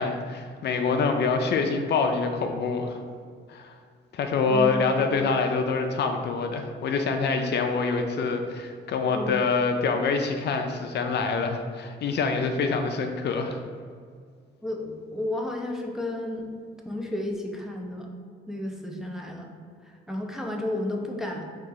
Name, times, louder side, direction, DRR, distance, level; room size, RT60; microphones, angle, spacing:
voice 1, 0.0-3.0 3.5-3.7 4.1-13.6, left 4 dB, 60° left, 5 dB, 0.4 m, -26 dB
voice 2, 4.5-4.9 9.1-9.4 14.6-16.4 16.8-18.1 18.5-19.5 19.9-21.4, left 1 dB, ahead, 0 dB, 0.5 m, -32 dB
4.0 x 2.8 x 3.7 m, 2.1 s
cardioid pair, 90°, 20 cm